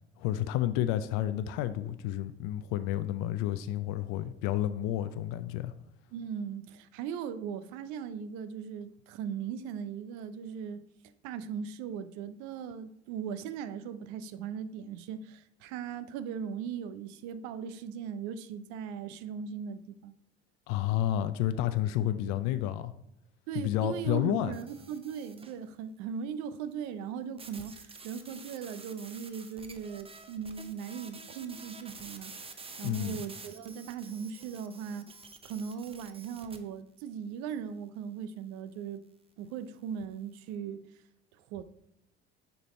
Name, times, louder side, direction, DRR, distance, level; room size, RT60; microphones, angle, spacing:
voice 1, 0.2-5.7 20.7-22.9 23.6-24.5 32.8-33.2, left 12 dB, 65° left, 0.5 m, -30 dB
voice 2, 6.1-10.8 11.2-20.1 23.5-35.1 35.4-39.0 39.4-40.8 41.3-41.6, right 7 dB, 65° right, 0.6 m, -39 dB
sound 1, 24.5-25.6 27.4-36.6, right 4 dB, 20° right, 0.7 m, -49 dB
6.9 x 5.2 x 3.1 m
hypercardioid pair, 65°, 32 cm